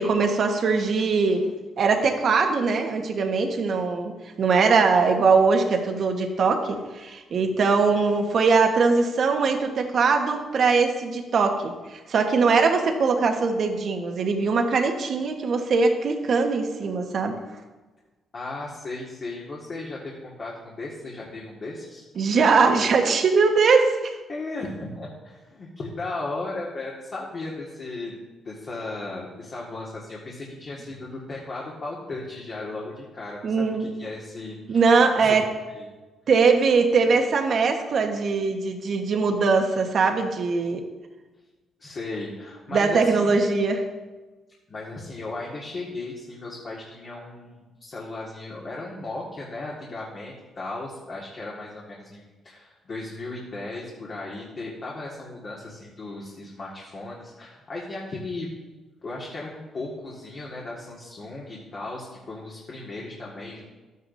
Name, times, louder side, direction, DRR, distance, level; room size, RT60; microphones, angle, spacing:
voice 1, 0.0-1.5 1.8-4.1 4.4-17.4 22.2-24.2 33.4-33.9 34.7-35.5 36.3-40.9 42.7-43.8, right 4 dB, 55° right, 4 dB, 1.3 m, -21 dB
voice 2, 18.3-22.0 24.3-34.8 35.2-35.4 35.8-35.9 41.8-43.4 44.7-58.5 59.0-63.6, left 2 dB, 45° left, -4 dB, 1.9 m, -36 dB
12.5 x 9.4 x 2.7 m, 1.2 s
cardioid pair, 90°, 0 cm